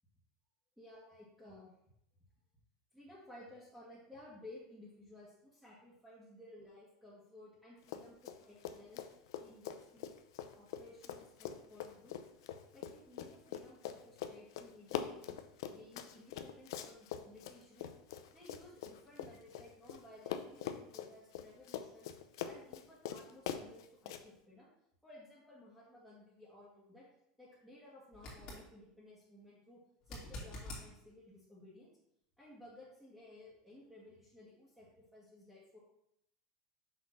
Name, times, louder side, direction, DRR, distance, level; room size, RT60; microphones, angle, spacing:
voice 1, 0.8-1.7 2.9-9.0 9.4-10.1 10.6-12.2 12.7-15.4 15.7-17.9 18.3-22.1 22.4-24.7 25.0-27.0 27.4-31.9 32.4-35.8, left 1 dB, ahead, -10 dB, 1.6 m, -57 dB
Run, 7.8-8.4 8.6-20.0 20.3-24.2, left 9 dB, 85° left, 0.6 m, -43 dB
sound 1, 28.1-28.7 30.0-30.9 33.9-34.0, left 1 dB, 40° left, 2.5 m, -46 dB
6.2 x 3.7 x 5.9 m, 0.77 s
supercardioid pair, 155°, 2 cm